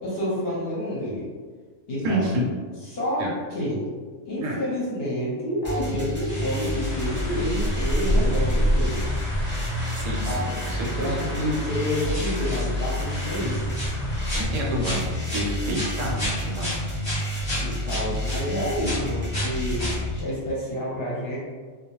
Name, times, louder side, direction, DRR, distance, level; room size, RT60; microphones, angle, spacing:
voice 1, 0.0-1.3 1.9-2.3 2.8-3.8 4.3-9.2 10.3-10.5 10.9-13.7 14.5-15.0 17.6-21.4, equal, 55° left, -7 dB, 0.8 m, -29 dB
voice 2, 2.0-2.5 3.2-3.3 4.4-4.6 10.0-11.2 14.3-15.0 15.3-16.8, right 1 dB, 75° right, -3 dB, 0.9 m, -29 dB
sound 1, 5.6-20.2, left 1 dB, 20° right, 0.3 m, -29 dB
sound 2, 6.3-18.5 18.8-20.0, left 1 dB, 20° left, 0.9 m, -36 dB
sound 3, 6.8-14.5, equal, 75° left, 0.4 m, -29 dB
2.3 x 2.0 x 2.9 m, 1.5 s
omnidirectional pair, 1.4 m